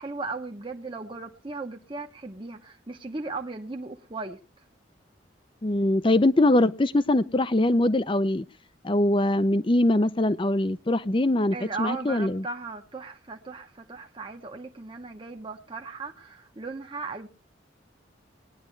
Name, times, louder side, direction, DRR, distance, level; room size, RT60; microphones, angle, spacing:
voice 1, 0.0-4.4 11.5-17.3, right 3 dB, 25° right, 0.9 m, -37 dB
voice 2, 5.6-8.4 8.8-12.4, left 1 dB, 30° left, 0.6 m, -22 dB
20.5 x 10.0 x 3.2 m
head